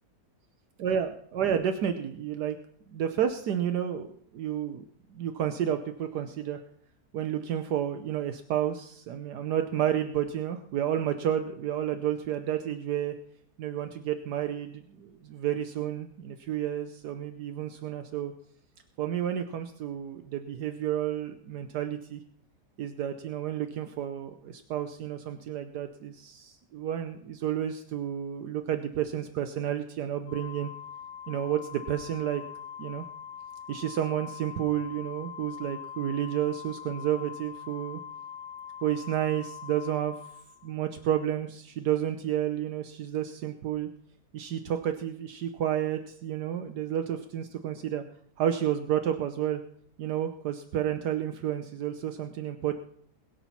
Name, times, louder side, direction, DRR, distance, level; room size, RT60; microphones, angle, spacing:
voice 1, 0.8-2.6 2.9-4.1 4.3-4.8 5.1-6.6 7.1-13.1 13.6-18.3 19.0-22.2 22.8-30.7 31.3-32.4 32.8-33.0 33.7-38.0 38.8-40.1 40.6-43.9 44.3-48.0 48.4-49.6 50.0-52.8, right 10 dB, 80° right, 8 dB, 1.4 m, -31 dB
Organ, 30.3-41.0, left 8 dB, 90° left, 1.5 m, -43 dB
21.0 x 7.2 x 5.7 m, 0.65 s
omnidirectional pair, 1.8 m